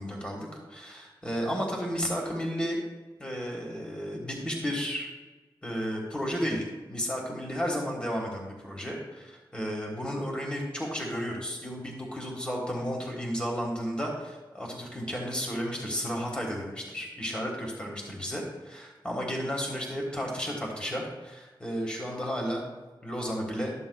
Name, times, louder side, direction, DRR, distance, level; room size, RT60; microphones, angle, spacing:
voice 1, 0.0-2.8 3.2-5.1 5.6-22.6 23.0-23.7, equal, 10° left, -1 dB, 1.6 m, -33 dB
13.0 x 7.2 x 2.3 m, 1.2 s
wide cardioid pair, 65°, 9 cm